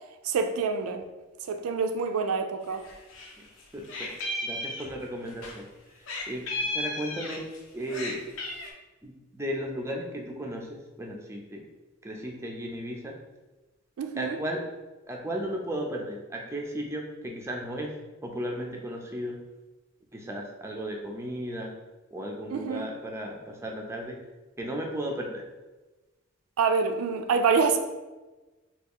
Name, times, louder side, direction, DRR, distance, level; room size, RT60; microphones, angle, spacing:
voice 1, 0.2-1.0 1.5-2.8 14.0-14.4 22.5-22.9 26.6-27.8, right 5 dB, 90° right, 7 dB, 0.4 m, -26 dB
Meow, 2.7-3.3 3.6-5.5 6.1-7.6 7.9-8.7, left 2 dB, 65° left, 0.6 m, -34 dB
voice 2, 3.7-4.1 4.4-5.7 6.3-7.4 7.7-8.2 9.0-11.6 12.0-13.1 14.2-14.6 15.1-17.9 18.2-19.4 20.1-21.7 22.1-24.2 24.6-25.4, equal, 15° right, 0 dB, 0.4 m, -35 dB
3.4 x 2.3 x 3.5 m, 1.1 s
head